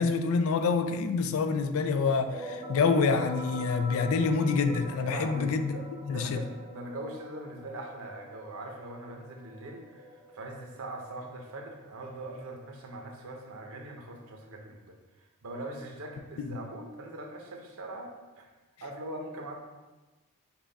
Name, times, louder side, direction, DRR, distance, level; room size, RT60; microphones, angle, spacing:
voice 1, 0.0-5.8 6.1-6.4 16.4-16.6, left 4 dB, 65° left, 0.3 m, -27 dB
sound 1, 2.0-11.4, equal, 15° right, 0.7 m, -44 dB
voice 2, 5.0-15.0 15.4-18.5 18.8-19.6, right 1 dB, 65° right, 0.7 m, -41 dB
5.5 x 2.3 x 3.9 m
head